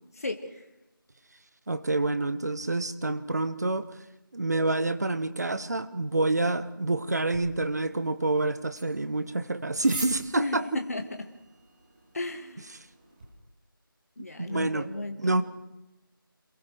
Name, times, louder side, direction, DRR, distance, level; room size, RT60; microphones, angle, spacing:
voice 1, 0.2-0.7 10.4-11.3 12.1-12.7 14.2-15.4, left 2 dB, 40° left, 5 dB, 2.0 m, -34 dB
voice 2, 1.7-3.9 4.3-10.7 14.4-14.9 15.2-15.4, right 2 dB, 45° right, 12 dB, 1.6 m, -27 dB
sound 1, 7.3-13.3, right 2 dB, 20° right, 4.0 m, -45 dB
27.0 x 22.5 x 4.8 m, 0.91 s
figure-of-eight pair, 170°, 12 cm